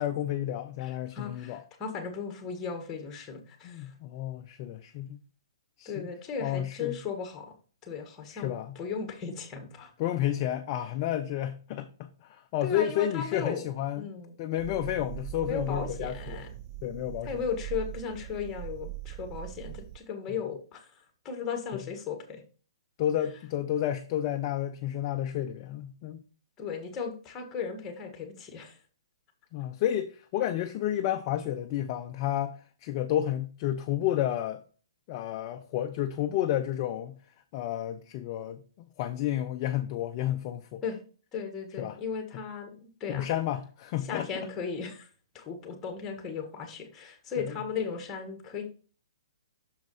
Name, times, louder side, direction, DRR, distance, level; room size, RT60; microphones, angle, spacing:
voice 1, 0.0-1.6 3.6-5.2 5.8-6.1 6.4-7.0 8.3-8.8 10.0-14.1 14.4-16.4 16.8-17.3 21.7-21.8 23.0-26.2 29.5-34.6 35.1-37.2 37.5-40.8 41.8-42.0 43.1-44.3 47.4-47.6, left 11 dB, 35° left, 0.5 m, -31 dB
voice 2, 0.8-3.9 5.8-7.5 7.8-9.9 12.6-13.6 14.0-14.4 15.4-16.5 17.2-22.4 26.6-28.8 40.8-41.0 41.3-43.3 44.0-45.1 45.3-48.6, left 6 dB, 15° left, 1.5 m, -36 dB
sound 1, 14.6-20.0, right 15 dB, 30° right, 0.4 m, -41 dB
6.3 x 4.7 x 4.1 m
hypercardioid pair, 155°, 3 cm